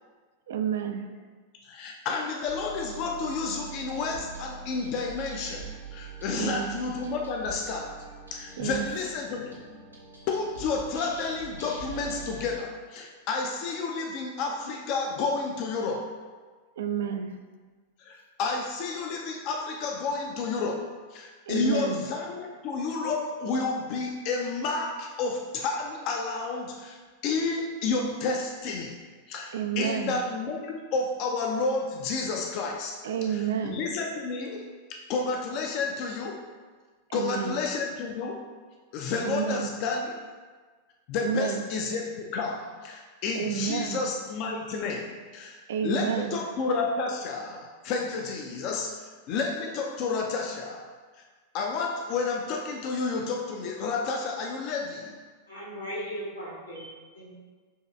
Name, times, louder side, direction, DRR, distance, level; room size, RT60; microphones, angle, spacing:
voice 1, 0.5-1.0 6.3-6.7 8.6-8.9 16.8-17.3 21.5-22.0 29.5-30.2 33.0-33.8 37.1-37.6 39.2-39.7 41.2-41.6 43.3-44.0 45.7-46.4, right 8 dB, 60° right, 7 dB, 0.3 m, -30 dB
voice 2, 1.6-8.0 8.3-9.7 10.3-16.1 18.0-27.0 27.2-29.0 29.3-33.0 33.3-36.4 37.1-38.4 38.9-40.2 41.1-45.6 45.8-50.9 51.5-55.2, left 4 dB, 40° left, 1 dB, 0.4 m, -31 dB
sound 1, 2.5-12.6, right 4 dB, 85° right, 0.8 m, -44 dB
voice 3, 55.5-57.3, equal, 85° left, -7 dB, 1.5 m, -38 dB
7.1 x 3.1 x 2.4 m, 1.4 s
figure-of-eight pair, 90°, 0 cm